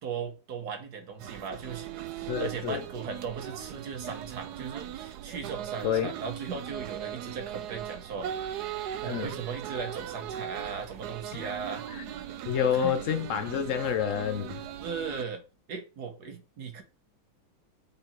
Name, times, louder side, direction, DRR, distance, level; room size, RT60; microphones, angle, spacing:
voice 1, 0.0-8.6 9.0-11.8 12.8-13.0 14.8-15.4 15.7-16.8, right 5 dB, 55° right, 1.6 m, -37 dB
sound 1, 1.2-15.2, right 10 dB, 75° right, 0.9 m, -39 dB
voice 2, 2.3-2.8 5.8-6.1 9.1-9.3 11.9-12.0 12.5-14.6, left 8 dB, 90° left, 0.6 m, -28 dB
5.3 x 4.2 x 5.9 m
omnidirectional pair, 2.2 m